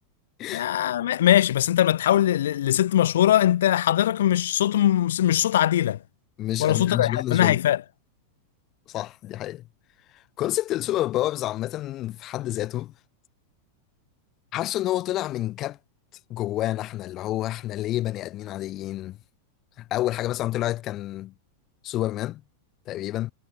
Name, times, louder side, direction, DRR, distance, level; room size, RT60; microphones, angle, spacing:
voice 1, 0.5-6.0 6.6-7.8, left 12 dB, 75° left, 7.0 m, -21 dB
voice 2, 6.4-7.6 8.9-9.6 10.1-12.9 14.5-15.8 16.3-19.2 19.8-21.3 21.8-22.4 22.9-23.3, left 14 dB, 40° left, 7.8 m, -29 dB
hypercardioid pair, 100°, 0 cm